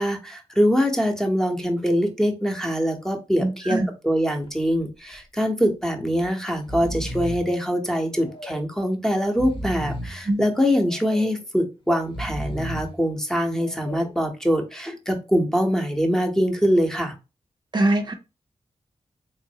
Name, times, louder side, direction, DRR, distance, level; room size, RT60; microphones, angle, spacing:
voice 1, 0.0-3.8 4.0-17.1, equal, 5° left, 0.8 m, -23 dB
voice 2, 3.4-3.9 10.3-10.5 17.7-18.1, right 2 dB, 40° right, 0.5 m, -22 dB
Breathing, 4.4-4.8 5.1-5.2 6.1-6.3 6.5-7.5 8.1-8.8 9.2-10.2 10.8-11.5 12.0-13.0 13.6-14.2, equal, 45° left, 1.0 m, -34 dB
3.8 x 3.0 x 2.7 m
wide cardioid pair, 130°, 12 cm